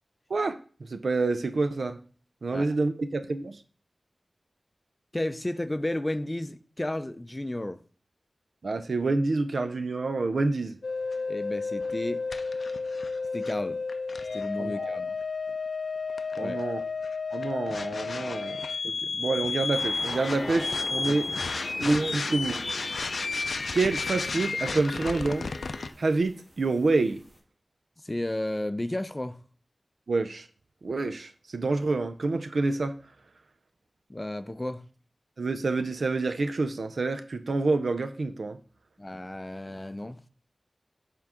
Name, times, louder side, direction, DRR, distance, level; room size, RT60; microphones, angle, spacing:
voice 1, 0.3-2.0 2.4-3.6 8.6-10.8 14.6-15.0 16.4-16.8 17.3-18.6 19.1-21.3 21.8-22.6 23.7-25.5 26.0-27.2 30.1-30.5 30.8-32.9 35.4-38.6, right 3 dB, 85° right, 0.4 m, -27 dB
voice 2, 5.1-7.8 11.3-12.2 13.3-13.8 14.3-15.1 16.4-16.6 21.1-21.2 28.0-29.4 34.1-34.8 39.0-40.2, left 1 dB, 25° left, 0.4 m, -33 dB
sound 1, 10.8-25.9, left 4 dB, 85° left, 0.4 m, -32 dB
sound 2, 19.7-27.4, equal, 40° right, 3.4 m, -44 dB
7.2 x 3.8 x 3.5 m
wide cardioid pair, 75°, 0 cm